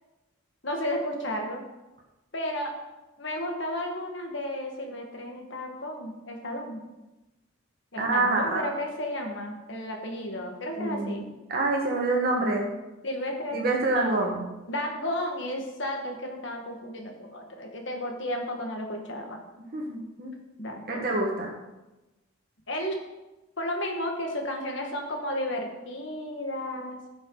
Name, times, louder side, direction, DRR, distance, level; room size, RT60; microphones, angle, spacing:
voice 1, 0.6-1.6 2.3-2.7 3.2-6.9 7.9-11.3 13.0-13.6 13.9-14.2 14.7-19.4 20.6-21.1 22.7-23.0 23.6-27.0, left 1 dB, 60° left, 2 dB, 1.7 m, -33 dB
voice 2, 8.0-8.7 10.8-12.7 13.5-14.4 19.7-20.3 20.9-21.5, right 2 dB, 45° right, -1 dB, 1.6 m, -26 dB
15.5 x 6.2 x 3.9 m, 1.1 s
head